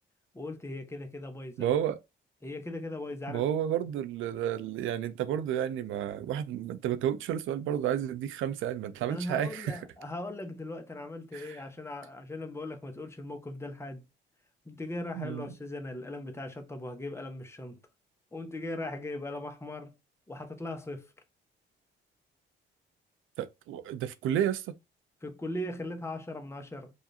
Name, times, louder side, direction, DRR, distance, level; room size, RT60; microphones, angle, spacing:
voice 1, 0.3-1.8 2.4-3.4 9.1-14.1 14.6-17.8 18.3-20.0 20.3-21.1 25.2-26.9, left 1 dB, 15° left, 1.0 m, -39 dB
voice 2, 1.6-2.0 3.3-9.8 11.3-11.6 15.2-15.5 23.4-24.7, right 10 dB, 85° right, 0.5 m, -31 dB
4.9 x 2.6 x 2.7 m
cardioid pair, 90°, 20 cm